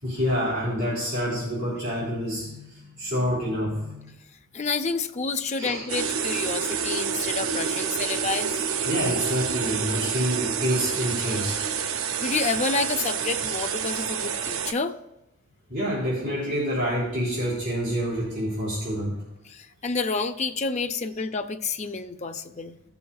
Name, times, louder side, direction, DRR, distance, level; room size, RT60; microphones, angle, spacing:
voice 1, 0.0-4.1 5.6-5.9 8.9-11.5 15.7-19.2, equal, 55° right, -8 dB, 3.5 m, -27 dB
voice 2, 4.5-8.6 12.2-14.9 19.5-22.8, left 4 dB, 35° left, 6 dB, 0.5 m, -29 dB
sound 1, 5.9-14.7, right 7 dB, 75° right, 0.5 m, -28 dB
16.5 x 7.0 x 2.3 m, 0.93 s
head